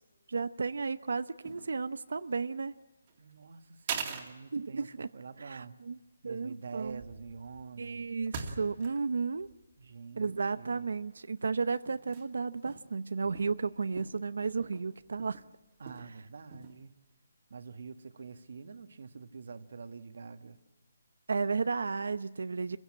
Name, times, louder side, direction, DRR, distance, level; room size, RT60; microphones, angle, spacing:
voice 1, 0.3-2.7 4.5-5.1 5.4-6.0 6.2-7.0 7.8-9.5 10.2-15.4 21.3-22.8, right 4 dB, 75° right, 12 dB, 0.7 m, -33 dB
sound 1, 1.4-1.8 2.0-2.6 3.1-3.2 3.9-4.4 5.0-5.2 5.5-5.6 6.8-9.1 9.3-10.6 11.1-11.2 11.9-12.3 12.6-12.9 13.2-15.5 15.9-16.1 16.4-16.8, right 6 dB, 25° right, 2.2 m, -43 dB
voice 2, 3.2-5.8 6.2-8.1 9.8-10.9 15.8-16.9 17.5-20.6 22.7-22.8, right 5 dB, 55° right, 9 dB, 1.5 m, -46 dB
28.0 x 16.0 x 8.8 m, 1.1 s
hypercardioid pair, 170°, 0 cm